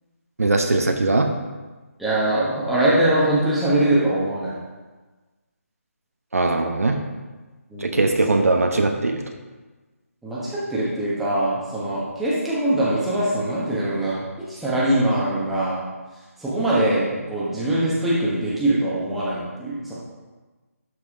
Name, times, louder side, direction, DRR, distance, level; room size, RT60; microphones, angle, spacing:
voice 1, 0.4-1.3 6.3-7.0 7.8-9.2, right 2 dB, 70° right, 4 dB, 1.0 m, -20 dB
voice 2, 2.0-4.5 7.7-8.0 10.2-15.8 16.4-19.9, right 1 dB, ahead, -10 dB, 1.3 m, -22 dB
12.0 x 4.9 x 3.7 m, 1.3 s
figure-of-eight pair, 155°, 8 cm